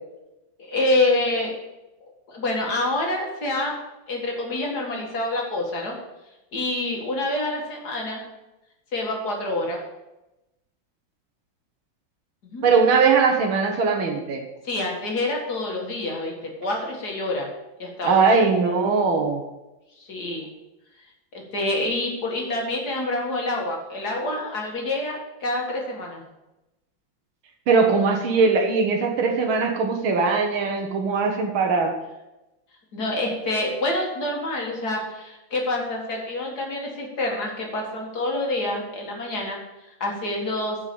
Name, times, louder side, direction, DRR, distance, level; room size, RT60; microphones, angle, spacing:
voice 1, 0.6-1.6 2.3-3.8 4.1-6.0 6.5-8.2 8.9-9.8 12.4-12.6 14.6-16.3 16.6-17.5 17.8-18.2 20.0-20.5 21.3-26.2 32.9-39.6 40.0-40.8, left 2 dB, 50° left, 0 dB, 2.3 m, -27 dB
voice 2, 12.6-14.5 18.0-19.4 27.7-31.9, right 4 dB, 90° right, 2 dB, 1.9 m, -20 dB
9.5 x 5.4 x 6.9 m, 0.97 s
omnidirectional pair, 2.2 m